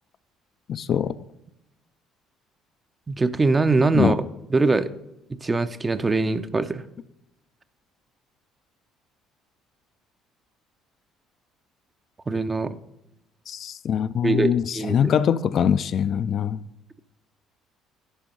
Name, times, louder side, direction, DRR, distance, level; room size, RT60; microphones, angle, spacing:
voice 1, 0.7-1.1 3.9-4.2 13.5-16.6, left 8 dB, 55° left, 0.3 m, -23 dB
voice 2, 3.1-4.2 4.5-4.9 5.3-6.8 12.3-12.8 14.2-15.1, right 3 dB, 25° right, 0.5 m, -22 dB
11.0 x 4.5 x 5.2 m
supercardioid pair, 80°, 0 cm